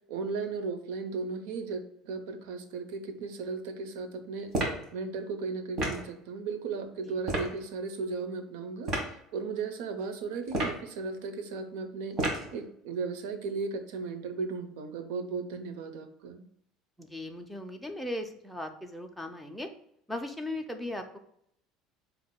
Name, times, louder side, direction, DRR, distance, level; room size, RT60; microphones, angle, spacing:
voice 1, 0.1-4.5 4.9-8.9 9.3-16.4, right 4 dB, 80° right, 8 dB, 0.7 m, -36 dB
sound 1, 4.5-4.9 5.8-6.1 7.2-7.5 8.8-9.1 10.5-10.9 12.2-12.5, right 1 dB, 35° right, 1.3 m, -30 dB
voice 2, 17.0-19.7 20.1-21.2, left 1 dB, ahead, 5 dB, 0.5 m, -37 dB
8.3 x 2.8 x 2.2 m, 0.72 s
cardioid pair, 170°, 0 cm